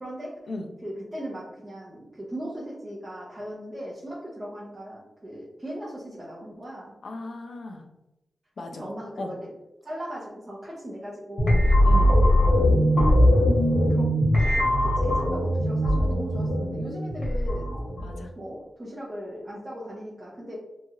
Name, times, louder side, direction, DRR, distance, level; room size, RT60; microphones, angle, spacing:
voice 1, 0.0-0.5 0.8-6.9 8.7-9.5 9.8-11.8 12.2-12.4 13.9-14.1 14.4-17.8 18.4-20.6, equal, 20° right, -7 dB, 0.5 m, -38 dB
voice 2, 7.0-7.9 8.6-8.9 9.2-9.3 11.8-12.2 18.0-18.3, left 2 dB, 55° left, 3 dB, 0.4 m, -36 dB
sound 1, 11.4-18.3, equal, 75° left, 1.1 m, -21 dB
3.0 x 2.4 x 2.7 m, 0.96 s
wide cardioid pair, 175°, 0 cm